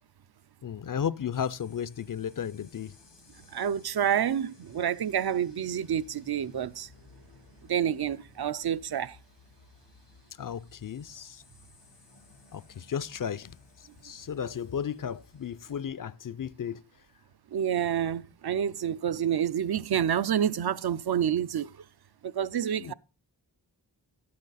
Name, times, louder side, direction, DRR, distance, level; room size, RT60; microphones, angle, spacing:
voice 1, 0.6-2.9 10.4-11.4 12.5-13.5 14.0-16.8 22.8-22.9, left 8 dB, 50° left, 0.4 m, -34 dB
sound 1, 1.3-15.8, left 4 dB, 85° left, 1.5 m, -58 dB
voice 2, 3.5-6.9 7.7-9.2 17.5-21.7 22.2-22.9, right 9 dB, 65° right, 0.5 m, -28 dB
11.5 x 8.6 x 4.0 m
wide cardioid pair, 55°, 41 cm